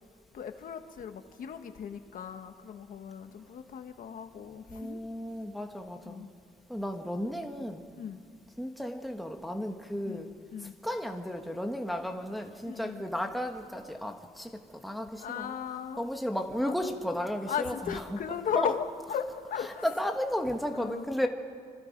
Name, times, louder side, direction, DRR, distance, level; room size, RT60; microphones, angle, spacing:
voice 1, 0.3-5.1 6.0-6.3 8.0-8.2 10.0-10.7 12.6-13.0 15.2-16.1 16.6-16.9 17.5-19.9 20.7-21.0, left 7 dB, 65° left, 7 dB, 1.3 m, -37 dB
voice 2, 4.7-6.3 6.7-7.8 8.6-10.3 10.8-15.5 16.0-18.2 18.5-18.7 19.8-21.3, equal, ahead, 4 dB, 1.2 m, -34 dB
27.0 x 26.0 x 5.3 m, 2.2 s
wide cardioid pair, 165°, 15 cm